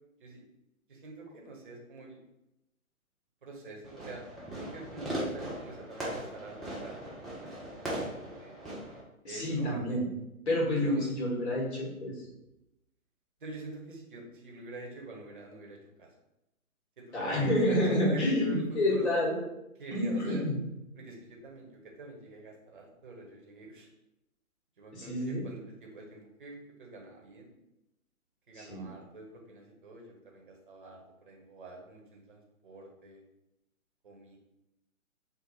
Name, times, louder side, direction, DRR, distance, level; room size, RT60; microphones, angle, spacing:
voice 1, 0.9-2.2 3.4-4.2 4.5-8.6 9.2-10.0 10.7-11.1 13.4-16.1 17.0-19.1 19.8-20.4 20.9-23.9 24.8-27.5 28.5-33.2 34.0-34.4, right 2 dB, 35° right, -1 dB, 0.7 m, -46 dB
Fireworks, 3.8-9.0, right 1 dB, ahead, 0.3 m, -39 dB
voice 2, 9.2-10.1 10.5-12.1 17.1-19.3 19.9-20.5 24.9-25.4 28.5-28.9, left 1 dB, 50° left, -4 dB, 1.4 m, -28 dB
3.3 x 2.0 x 4.0 m, 0.88 s
figure-of-eight pair, 135°, 44 cm